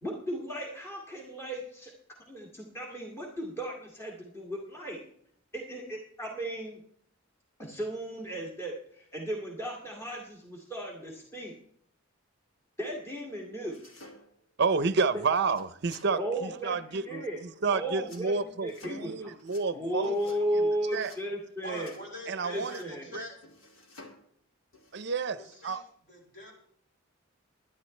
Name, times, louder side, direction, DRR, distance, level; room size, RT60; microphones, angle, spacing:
voice 1, 0.0-1.9 2.3-5.0 5.5-6.8 7.6-11.5 12.8-13.8 16.2-17.4 17.7-18.3 18.6-19.3 19.7-21.9 22.5-23.2, right 1 dB, 10° left, 2.2 m, -35 dB
sound 1, 13.7-14.5 15.4-16.1 18.0-18.3 18.7-19.1 19.4-19.7 20.0-20.4 20.9-21.2 21.8-22.0 22.5-23.0 23.4-24.2 24.7-25.1, left 2 dB, 75° left, 2.4 m, -52 dB
voice 2, 14.6-21.1 22.3-22.8 23.1-23.2 24.9-25.4 25.6-25.8, right 4 dB, 55° right, 0.6 m, -30 dB
voice 3, 21.6-23.4 25.4-25.8 26.1-26.5, equal, 45° left, 5.6 m, -43 dB
22.0 x 10.5 x 3.2 m
head